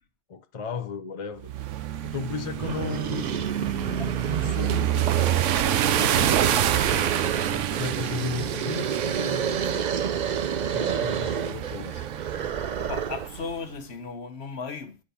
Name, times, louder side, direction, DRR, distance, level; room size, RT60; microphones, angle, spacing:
voice 1, 0.3-1.5 2.0-3.3 4.4-9.5 10.7-12.1, left 6 dB, 35° left, 0.6 m, -35 dB
sound 1, 1.4-13.6, right 11 dB, 90° right, 1.0 m, -27 dB
sound 2, 2.6-13.4, right 7 dB, 50° right, 0.6 m, -30 dB
voice 2, 9.1-9.9 12.8-15.0, left 5 dB, 60° left, 1.3 m, -37 dB
10.0 x 4.2 x 6.9 m
omnidirectional pair, 1.2 m